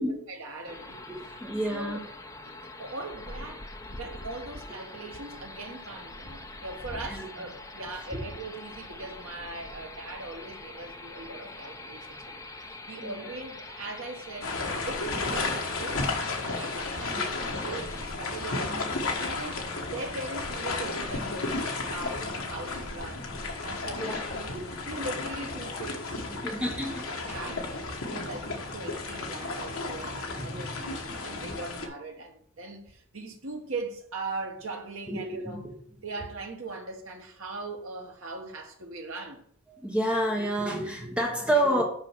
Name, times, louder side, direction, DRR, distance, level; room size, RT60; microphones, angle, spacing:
voice 1, 0.0-1.4 1.7-2.0 2.4-35.6 36.0-39.4, right 3 dB, 60° right, 1.5 m, -40 dB
sound 1, 0.7-18.1, left 2 dB, 15° left, 0.7 m, -44 dB
voice 2, 1.2-2.0 7.1-7.3 8.1-8.2 13.0-13.1 17.2-17.3 23.8-24.2 24.5-24.6 26.3-27.1 30.4-30.8 35.1-35.6 39.7-41.8, right 1 dB, 5° right, 1.1 m, -29 dB
sound 2, 14.4-31.9, left 3 dB, 65° left, 1.3 m, -33 dB
6.2 x 5.4 x 6.2 m
head